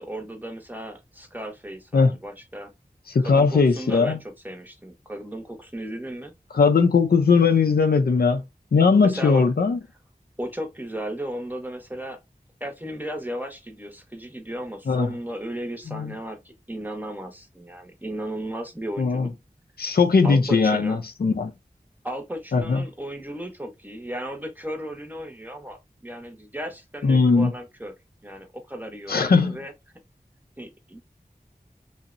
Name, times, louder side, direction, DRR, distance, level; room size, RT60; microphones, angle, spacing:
voice 1, 0.0-2.7 3.2-6.3 9.0-9.4 10.4-12.2 12.6-19.3 20.2-21.0 22.0-27.9 28.2-29.7 30.6-31.0, right 1 dB, 10° right, 0.7 m, -35 dB
voice 2, 3.1-4.2 6.5-8.4 8.7-9.8 14.9-15.1 15.9-16.1 19.0-19.3 19.8-21.5 22.5-22.8 27.0-27.5 29.1-29.6, left 4 dB, 80° left, 0.4 m, -19 dB
2.8 x 2.0 x 2.4 m
wide cardioid pair, 50°, 16 cm